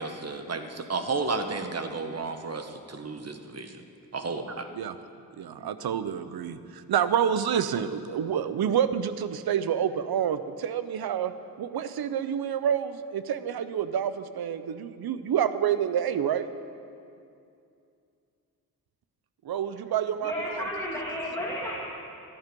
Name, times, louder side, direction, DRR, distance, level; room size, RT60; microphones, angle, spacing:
voice 1, 0.0-3.8 4.1-4.7 5.6-5.7, right 3 dB, 45° right, 7 dB, 1.2 m, -32 dB
voice 2, 5.4-16.5 19.4-20.7, right 9 dB, 80° right, 12 dB, 0.7 m, -28 dB
voice 3, 20.2-21.8, equal, 10° left, -6 dB, 2.4 m, -32 dB
14.5 x 11.0 x 5.3 m, 2.5 s
cardioid pair, 70°, 36 cm